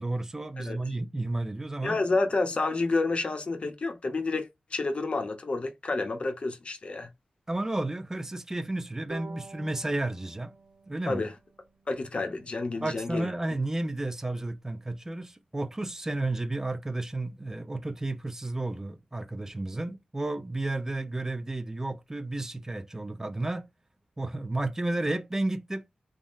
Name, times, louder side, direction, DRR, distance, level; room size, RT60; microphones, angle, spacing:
voice 1, 0.0-2.0 7.5-10.5 10.9-11.2 12.8-23.7 24.2-25.8, right 2 dB, 20° right, 0.4 m, -32 dB
voice 2, 1.8-7.1 11.1-11.3 11.9-13.3, left 3 dB, 45° left, 0.7 m, -29 dB
Bowed string instrument, 9.1-12.4, right 4 dB, 75° right, 1.0 m, -49 dB
3.5 x 2.1 x 2.5 m
cardioid pair, 80°, 3 cm